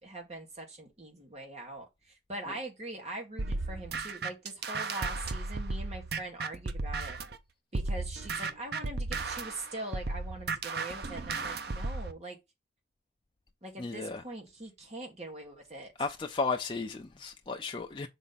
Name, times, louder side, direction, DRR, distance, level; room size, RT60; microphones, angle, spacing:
voice 1, 0.0-7.2 7.7-12.4 13.6-15.9, right 2 dB, 35° right, 1.8 m, -42 dB
sound 1, 3.4-7.4 7.7-12.1, right 3 dB, 55° right, 0.6 m, -34 dB
voice 2, 13.8-14.2 16.0-18.1, left 4 dB, 25° left, 0.4 m, -34 dB
6.1 x 4.1 x 4.0 m
head